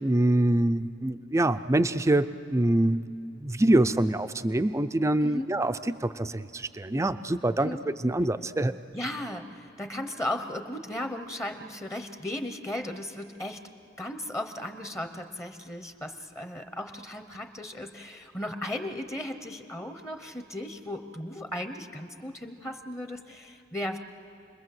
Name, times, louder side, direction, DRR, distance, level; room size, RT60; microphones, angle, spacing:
voice 1, 0.0-3.1 3.4-7.7 8.0-8.7, right 1 dB, 15° right, 11 dB, 0.5 m, -25 dB
voice 2, 8.9-13.6 14.0-24.0, left 1 dB, 15° left, 7 dB, 0.9 m, -36 dB
29.0 x 21.0 x 7.7 m, 2.5 s
head